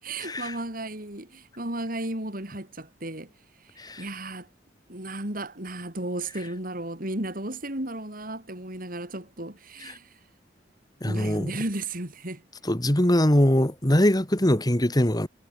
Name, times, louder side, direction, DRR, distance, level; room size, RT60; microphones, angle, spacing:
voice 1, 0.0-4.5 4.9-10.2 11.1-12.4, right 1 dB, 50° right, 6.5 m, -34 dB
voice 2, 11.0-11.5 12.6-15.3, left 1 dB, 20° left, 2.2 m, -22 dB
head